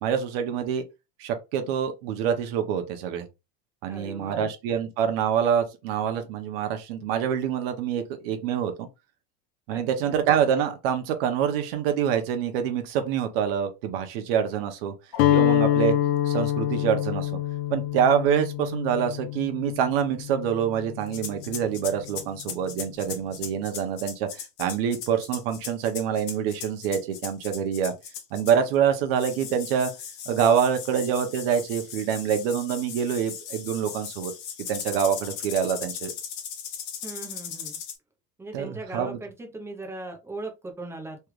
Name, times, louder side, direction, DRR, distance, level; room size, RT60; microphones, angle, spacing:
voice 1, 0.0-0.8 1.2-3.3 3.8-8.9 9.7-14.9 15.3-15.9 16.2-17.4 17.7-27.9 28.3-29.9 30.3-34.3 34.7-36.1 38.5-39.2, right 8 dB, 80° right, 0.8 m, -26 dB
voice 2, 3.9-4.5 9.7-10.2 37.0-37.8 38.4-41.2, right 2 dB, 10° right, 0.6 m, -39 dB
Guitar, 15.1-21.2, left 12 dB, 85° left, 0.6 m, -26 dB
sound 1, 21.1-28.7 29.2-38.0, left 8 dB, 60° left, 1.0 m, -38 dB
3.2 x 2.4 x 3.1 m
cardioid pair, 160°, 29 cm